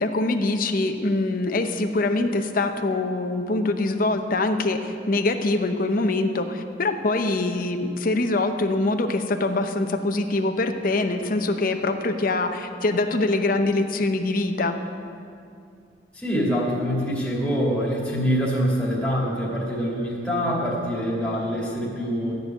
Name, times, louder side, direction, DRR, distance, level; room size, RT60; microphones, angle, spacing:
voice 1, 0.0-14.8, left 2 dB, 50° left, 6 dB, 0.8 m, -24 dB
voice 2, 16.1-22.4, equal, 5° left, -6 dB, 2.5 m, -25 dB
13.5 x 5.4 x 9.2 m, 2.4 s
head